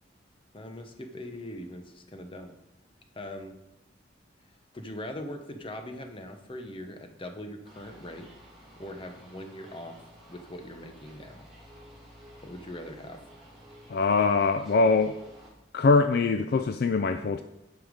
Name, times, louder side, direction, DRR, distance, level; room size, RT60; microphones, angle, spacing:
voice 1, 0.5-2.5 3.1-3.5 4.7-8.3 8.8-10.0 10.3-11.4 12.4-13.2, left 1 dB, 30° left, 5 dB, 0.9 m, -41 dB
sound 1, 7.6-15.5, equal, ahead, 2.7 m, -52 dB
voice 2, 13.9-15.1 15.7-17.4, left 4 dB, 55° left, 9 dB, 0.4 m, -23 dB
9.3 x 5.7 x 5.1 m, 0.90 s
head